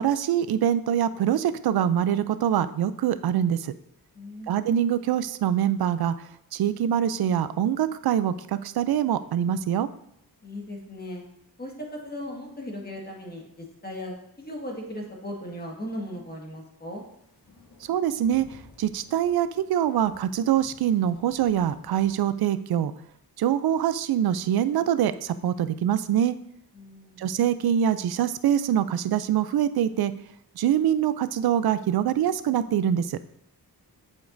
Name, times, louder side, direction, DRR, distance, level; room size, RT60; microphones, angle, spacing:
voice 1, 0.0-3.7 4.5-6.2 6.5-9.9 17.9-18.5 18.8-22.9 23.4-26.3 27.2-30.1 30.6-33.2, right 10 dB, 70° right, 13 dB, 0.5 m, -24 dB
voice 2, 4.1-4.5 10.4-11.2 11.6-17.0 26.7-27.2, left 1 dB, 25° left, -1 dB, 1.7 m, -37 dB
sound 1, 16.9-22.3, left 3 dB, 65° left, 2.2 m, -55 dB
8.2 x 7.1 x 2.6 m, 0.75 s
wide cardioid pair, 105°, 39 cm